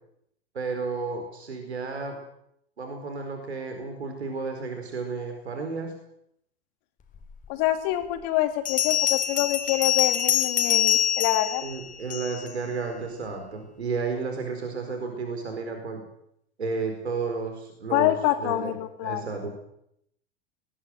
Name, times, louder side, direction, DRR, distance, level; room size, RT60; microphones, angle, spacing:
voice 1, 0.5-2.2 2.8-5.9 11.6-16.0 16.6-18.8 19.0-19.5, right 4 dB, 85° right, 5 dB, 4.5 m, -32 dB
Bell, 7.4-7.5 8.6-12.5, left 10 dB, 25° left, 3.6 m, -25 dB
voice 2, 7.5-11.6 17.9-19.3, left 14 dB, 50° left, 6 dB, 2.8 m, -26 dB
20.0 x 20.0 x 7.9 m, 0.75 s
hypercardioid pair, 95°, 32 cm